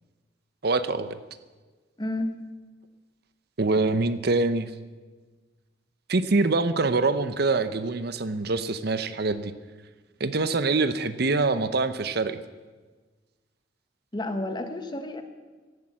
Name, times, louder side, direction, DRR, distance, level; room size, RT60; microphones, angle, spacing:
voice 1, 0.6-1.2 3.6-4.7 6.1-9.5 10.2-12.4, right 3 dB, 55° right, 12 dB, 0.8 m, -24 dB
voice 2, 2.0-2.3 14.1-15.2, left 1 dB, 25° left, 7 dB, 1.3 m, -30 dB
16.5 x 11.5 x 7.5 m, 1.4 s
head